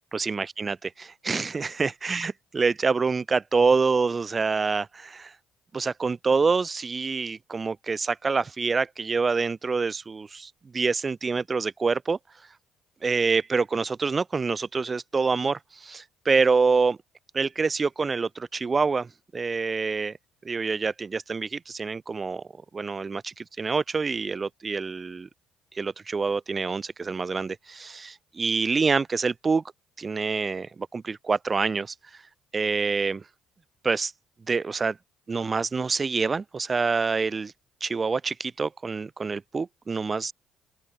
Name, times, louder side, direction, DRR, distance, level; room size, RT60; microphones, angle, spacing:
voice 1, 0.1-5.3 5.7-12.2 13.0-17.0 17.3-20.2 20.4-22.4 22.7-25.3 25.7-29.6 30.0-31.9 32.5-33.2 33.8-34.1 34.5-35.0 35.3-37.5 37.8-40.3, right 4 dB, 35° right, 0.9 m, -26 dB
open air
hypercardioid pair, 55°, 0 cm